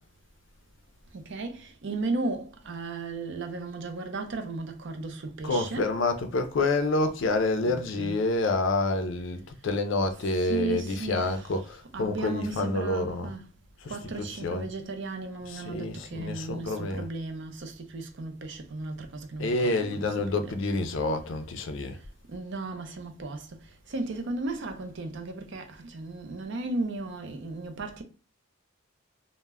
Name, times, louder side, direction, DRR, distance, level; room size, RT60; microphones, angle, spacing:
voice 1, 1.1-6.0 7.6-8.2 10.3-11.7 11.9-13.5 13.9-20.6 22.3-23.5 23.9-28.0, right 3 dB, 60° right, 0.5 m, -35 dB
voice 2, 5.4-13.3 13.8-14.7 15.4-17.1 19.4-22.0, left 2 dB, 65° left, 0.4 m, -28 dB
2.1 x 2.1 x 3.4 m
head